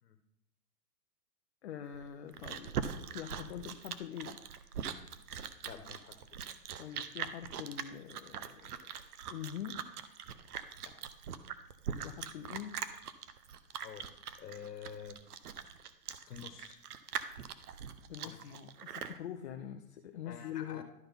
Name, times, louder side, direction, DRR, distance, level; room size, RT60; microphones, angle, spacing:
voice 1, 1.6-4.4 6.8-8.9 9.3-9.8 12.0-12.8 18.1-20.8, left 10 dB, 45° left, 5 dB, 0.7 m, -44 dB
Chewing mastication, 1.9-19.2, right 8 dB, 70° right, 0.8 m, -42 dB
voice 2, 5.6-6.1 13.8-14.1 14.4-15.2 16.3-16.8 18.2-18.5 20.2-20.8, left 8 dB, 75° left, 7 dB, 1.3 m, -48 dB
12.0 x 4.0 x 5.3 m, 0.77 s
hypercardioid pair, 150°, 48 cm